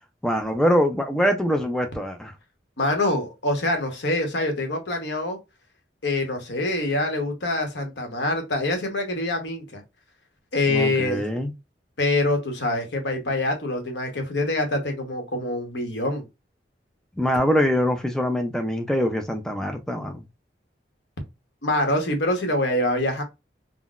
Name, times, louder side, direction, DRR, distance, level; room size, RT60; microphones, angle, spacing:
voice 1, 0.2-2.3 10.7-11.5 17.2-20.2, equal, 5° left, 0.4 m, -23 dB
voice 2, 2.8-5.4 6.0-9.8 10.5-11.2 12.0-16.2 21.6-23.2, left 2 dB, 75° left, 1.0 m, -25 dB
3.8 x 2.1 x 2.3 m
head